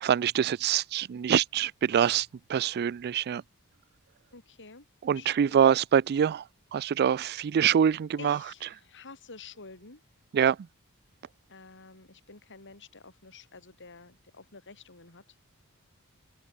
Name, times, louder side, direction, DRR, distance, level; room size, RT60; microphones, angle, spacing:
voice 1, 0.0-3.4 5.0-6.4 6.7-8.4 10.3-10.6, right 8 dB, 45° right, 0.3 m, -25 dB
voice 2, 4.3-5.7 8.2-10.0 11.5-15.4, left 4 dB, 55° left, 4.9 m, -49 dB
head